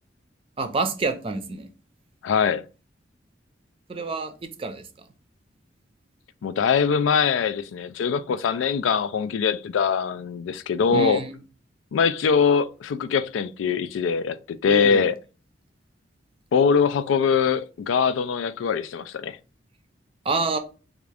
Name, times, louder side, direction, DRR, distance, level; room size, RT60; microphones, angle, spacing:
voice 1, 0.6-1.7 3.9-5.1 10.9-11.4 14.7-15.1 20.2-20.6, right 3 dB, 30° right, 0.5 m, -28 dB
voice 2, 2.2-2.6 6.4-11.2 11.9-15.1 16.5-19.4, left 6 dB, 90° left, 0.3 m, -22 dB
3.5 x 2.5 x 3.3 m
head